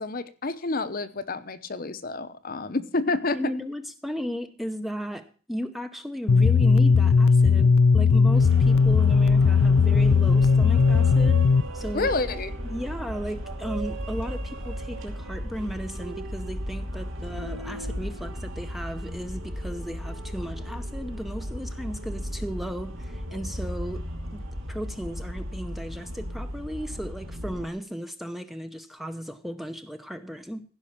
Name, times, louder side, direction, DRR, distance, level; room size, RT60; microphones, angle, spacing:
voice 1, 0.0-3.4 11.9-12.5, left 3 dB, 45° left, 0.8 m, -29 dB
voice 2, 3.3-11.4 11.7-12.1 12.6-24.0 24.3-30.6, equal, ahead, 0.7 m, -35 dB
sound 1, 6.3-11.6, left 5 dB, 85° left, 0.5 m, -18 dB
sound 2, 8.3-27.7, equal, 70° right, 2.5 m, -35 dB
16.0 x 5.6 x 7.1 m
head